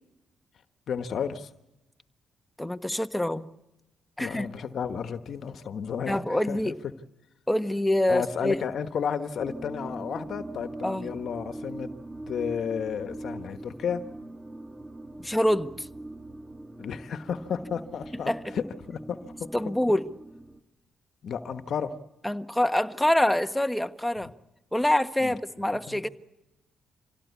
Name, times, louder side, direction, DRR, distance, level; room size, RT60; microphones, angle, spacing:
voice 1, 0.9-1.5 4.2-6.7 8.1-11.9 12.3-14.0 16.8-19.5 21.2-22.0 25.2-25.3 25.9-26.1, left 7 dB, 65° left, 1.3 m, -32 dB
voice 2, 2.6-3.4 4.2-4.5 6.1-6.7 7.5-8.6 10.8-11.1 15.2-15.9 18.3-18.4 19.5-20.0 22.2-24.3 24.7-26.1, left 1 dB, 5° left, 1.3 m, -25 dB
sound 1, 9.4-20.6, right 2 dB, 20° right, 1.8 m, -42 dB
26.5 x 17.0 x 8.4 m
cardioid pair, 70°, 0 cm